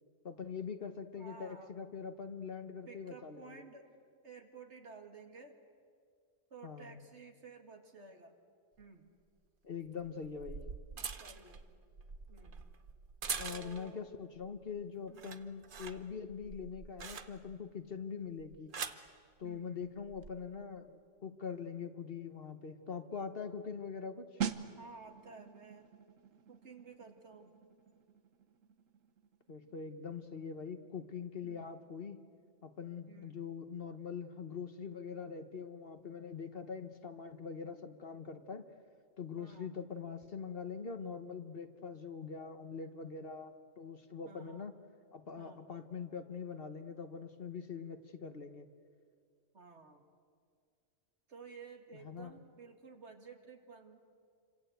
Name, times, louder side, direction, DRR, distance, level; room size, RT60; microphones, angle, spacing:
voice 1, 0.2-3.6 6.6-7.0 9.6-10.6 13.3-18.7 19.4-24.4 29.5-32.2 32.6-38.7 39.2-44.7 45.1-48.7 51.9-52.3, left 6 dB, 50° left, 9 dB, 1.3 m, -43 dB
voice 2, 1.1-1.7 2.9-3.9 4.2-5.6 6.5-8.4 8.8-9.1 10.9-11.6 12.3-12.7 13.5-14.0 15.1-15.4 19.4-19.9 24.8-25.9 26.5-27.6 31.4-31.6 33.1-33.3 39.4-39.7 44.2-44.7 45.4-45.6 49.5-50.0 51.3-54.1, right 4 dB, 60° right, 4 dB, 2.4 m, -54 dB
sound 1, 8.8-8.9 10.0-14.0 14.4-14.8 15.1-17.7 18.4-19.1 20.0-20.3, right 5 dB, 45° right, 1.1 m, -44 dB
sound 2, 24.4-34.9 35.2-35.4, right 7 dB, 85° right, 1.4 m, -46 dB
27.5 x 26.0 x 8.0 m, 2.1 s
omnidirectional pair, 1.3 m